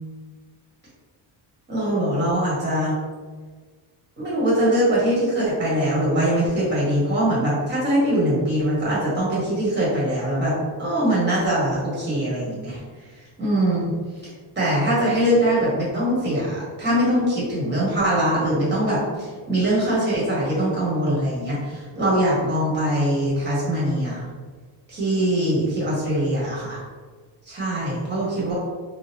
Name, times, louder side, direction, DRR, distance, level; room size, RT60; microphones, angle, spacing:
voice 1, 1.7-2.9 4.2-12.8 13.4-13.9 14.5-24.3 24.9-26.8 27.5-28.6, right 1 dB, 25° right, -8 dB, 1.5 m, -22 dB
3.8 x 2.4 x 2.9 m, 1.5 s
cardioid pair, 145°, 46 cm